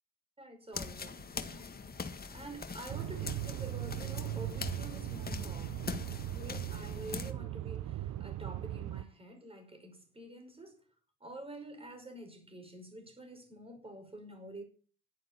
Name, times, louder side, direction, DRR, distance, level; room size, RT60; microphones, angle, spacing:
voice 1, 0.4-1.7 2.3-6.1 6.3-10.8 11.2-14.6, right 2 dB, 20° right, 5.6 m, -48 dB
sound 1, 0.7-7.3, left 4 dB, 30° left, 1.8 m, -42 dB
sound 2, 2.9-9.0, right 14 dB, 70° right, 0.6 m, -39 dB
11.5 x 9.3 x 8.9 m
cardioid pair, 90°, 30 cm